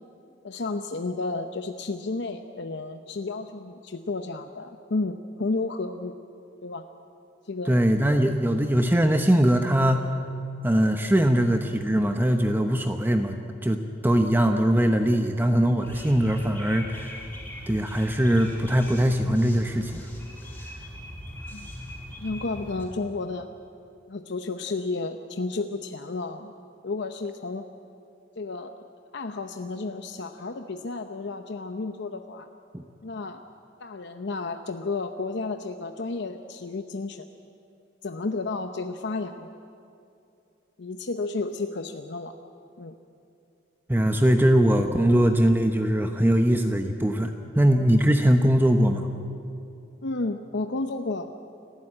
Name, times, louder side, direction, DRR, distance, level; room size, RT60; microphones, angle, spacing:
voice 1, 0.4-6.2 6.6-6.8 7.5-7.8 21.5-21.7 22.2-23.5 24.1-26.5 26.8-27.6 28.4-28.7 29.1-32.5 33.0-33.4 33.8-37.3 38.0-39.5 40.8-42.3 42.8-42.9 50.0-51.3, left 3 dB, 65° left, 7 dB, 0.8 m, -32 dB
voice 2, 7.7-10.1 10.6-13.4 13.6-17.2 17.7-20.1 32.7-32.8 43.9-49.1, equal, 10° right, 6 dB, 0.8 m, -21 dB
sound 1, 15.8-22.8, equal, 10° left, 5.0 m, -40 dB
29.5 x 12.5 x 8.7 m, 2.6 s
head